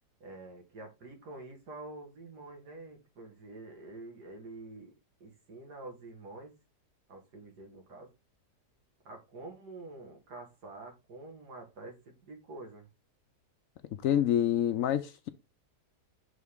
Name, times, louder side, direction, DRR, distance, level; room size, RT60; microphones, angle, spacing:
voice 1, 0.2-4.9 5.2-6.5 7.1-8.1 9.0-12.9, right 2 dB, 85° right, 2.4 m, -47 dB
voice 2, 14.0-15.3, left 10 dB, 70° left, 0.9 m, -27 dB
7.4 x 3.8 x 3.6 m
omnidirectional pair, 1.7 m